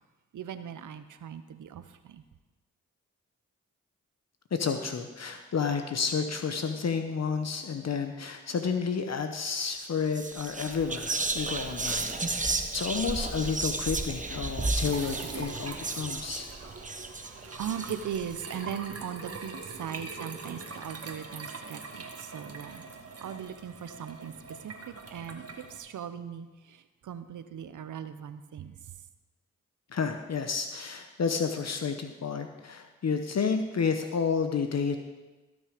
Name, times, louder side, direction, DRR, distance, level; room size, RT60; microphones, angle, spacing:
voice 1, 0.3-2.2 17.6-22.8 23.2-24.3 24.6-25.4 25.7-26.8 27.0-28.7, right 8 dB, 80° right, 12 dB, 0.8 m, -39 dB
voice 2, 4.5-16.5 29.9-35.0, left 5 dB, 60° left, 6 dB, 0.9 m, -31 dB
Whispering, 9.7-9.9 10.1-18.2, right 3 dB, 25° right, 1.1 m, -33 dB
sound 1, 14.8-25.8, right 4 dB, 50° right, 1.7 m, -43 dB
16.5 x 6.3 x 5.1 m, 1.2 s
supercardioid pair, 40°, 30 cm